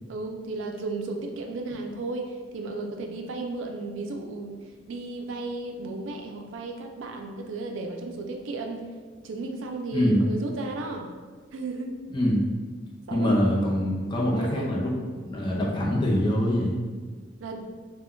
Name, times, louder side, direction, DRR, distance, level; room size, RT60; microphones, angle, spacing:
voice 1, 0.1-4.6 4.9-8.8 9.2-11.1 11.5-12.0 13.1-13.4 14.3-14.8 17.4-17.6, right 3 dB, 85° right, 3 dB, 0.4 m, -34 dB
voice 2, 12.1-12.4 13.1-14.9 15.2-16.8, equal, 25° left, -3 dB, 0.4 m, -24 dB
2.2 x 2.1 x 3.6 m, 1.5 s
head